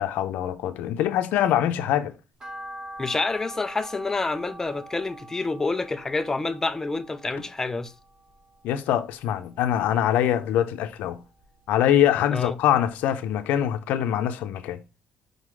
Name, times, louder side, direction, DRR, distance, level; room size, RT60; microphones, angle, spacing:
voice 1, 0.0-2.1 8.6-11.2 11.7-14.8, left 11 dB, 80° left, 0.8 m, -23 dB
sound 1, 2.4-8.7 9.1-10.2 10.6-12.0 12.4-12.5 12.9-13.0 13.3-13.4, right 1 dB, 25° right, 2.5 m, -44 dB
voice 2, 3.0-7.9 12.3-12.6, left 3 dB, 15° left, 0.7 m, -28 dB
5.5 x 4.0 x 4.8 m
cardioid pair, 120°, 3 cm